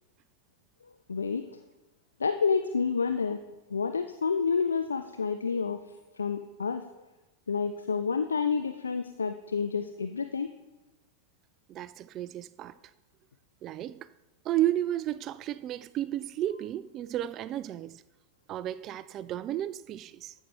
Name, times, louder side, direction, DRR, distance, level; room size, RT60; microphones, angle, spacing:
voice 1, 1.1-1.6 2.2-3.4 3.7-5.8 6.2-6.9 7.5-10.5, left 5 dB, 75° left, 0.4 m, -29 dB
voice 2, 11.7-12.8 13.6-14.1 14.4-18.0 18.5-20.3, right 13 dB, 35° right, 0.3 m, -33 dB
13.0 x 7.9 x 3.5 m
figure-of-eight pair, 90°, 0 cm